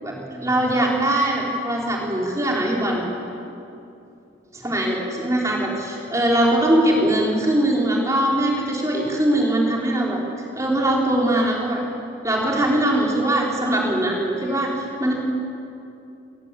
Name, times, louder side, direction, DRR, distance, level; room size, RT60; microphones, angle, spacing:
voice 1, 0.0-3.0 4.5-10.2 10.6-11.8 12.2-14.7 15.0-15.1, right 1 dB, 15° right, -2 dB, 4.5 m, -21 dB
25.0 x 20.0 x 8.7 m, 2.7 s
head